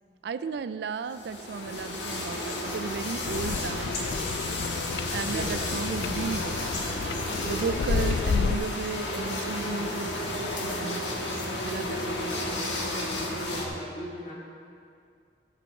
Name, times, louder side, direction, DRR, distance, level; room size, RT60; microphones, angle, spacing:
voice 1, 0.2-3.9 5.1-6.6 7.4-11.1 11.6-12.4, right 5 dB, 65° right, 12 dB, 0.3 m, -34 dB
sound 1, 1.1-13.6, left 1 dB, 85° left, 1.4 m, -32 dB
sound 2, 3.2-8.6, left 5 dB, 65° left, 0.3 m, -31 dB
voice 2, 5.2-5.6 13.3-14.3, right 1 dB, 40° left, -4 dB, 2.1 m, -38 dB
14.5 x 6.4 x 4.4 m, 2.3 s
head